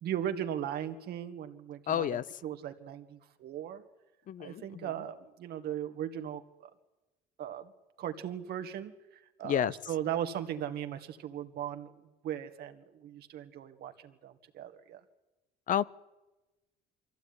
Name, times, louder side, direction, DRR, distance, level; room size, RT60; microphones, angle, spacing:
voice 1, 0.0-3.8 4.4-6.7 7.4-7.7 8.0-11.9 12.2-15.0, right 10 dB, 70° right, 8 dB, 2.1 m, -38 dB
voice 2, 1.9-2.2 4.3-4.6 9.4-9.7 15.7-15.8, left 10 dB, 50° left, 18 dB, 0.7 m, -29 dB
24.0 x 15.5 x 9.8 m, 1.1 s
cardioid pair, 110°, 17 cm